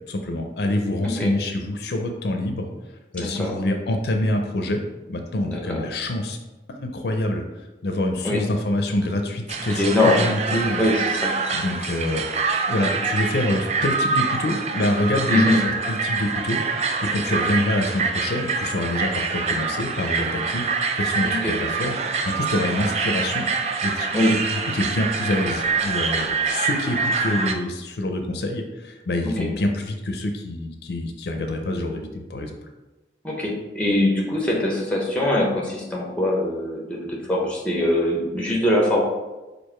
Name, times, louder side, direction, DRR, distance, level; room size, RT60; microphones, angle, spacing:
voice 1, 0.1-2.7 3.1-4.8 5.1-6.4 6.7-7.4 7.8-10.8 11.5-12.2 12.7-16.6 17.0-23.5 23.8-32.6, left 1 dB, 70° left, 4 dB, 0.5 m, -26 dB
voice 2, 3.2-3.5 5.4-5.8 8.2-8.4 9.8-11.4 15.3-15.6 21.2-21.5 24.1-24.3 29.2-29.5 33.2-39.0, left 1 dB, 5° left, -2 dB, 0.7 m, -22 dB
sound 1, 9.5-27.6, right 4 dB, 35° right, 0.3 m, -25 dB
4.6 x 2.6 x 4.4 m, 1.1 s
head